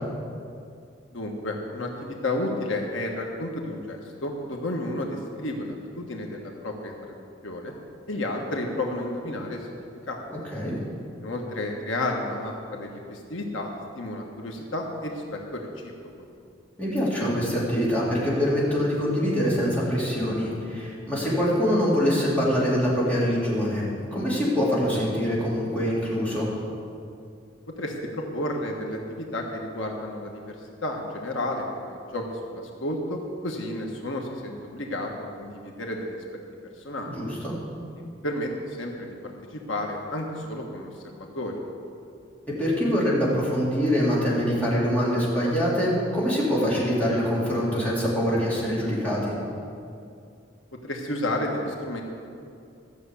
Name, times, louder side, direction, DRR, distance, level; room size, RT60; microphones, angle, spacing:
voice 1, 1.1-7.7 8.1-10.2 11.2-13.7 13.9-15.9 27.8-30.5 30.8-35.1 35.4-36.2 36.8-37.2 38.2-40.9 41.3-41.6 50.8-52.0, left 1 dB, 85° left, 1 dB, 1.5 m, -31 dB
voice 2, 16.8-26.5 37.1-37.6 42.6-49.4, equal, 10° left, -8 dB, 3.6 m, -24 dB
14.0 x 6.8 x 8.4 m, 2.5 s
head